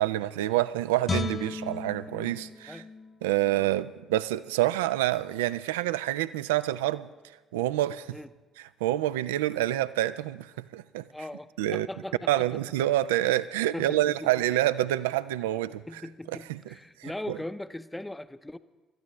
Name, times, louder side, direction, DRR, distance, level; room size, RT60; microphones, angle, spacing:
voice 1, 0.0-2.8 3.2-7.1 7.5-8.2 8.8-11.1 11.6-11.9 12.3-15.8 16.5-16.6 17.0-17.1, right 14 dB, 80° right, 15 dB, 0.3 m, -27 dB
Guitar, 1.0-4.2 4.6-4.8, left 3 dB, 35° left, 1.1 m, -36 dB
voice 2, 11.1-12.6 13.7-14.3 15.5-18.6, left 1 dB, 10° left, 13 dB, 0.6 m, -40 dB
21.5 x 12.5 x 3.2 m, 1.2 s
hypercardioid pair, 50°, 0 cm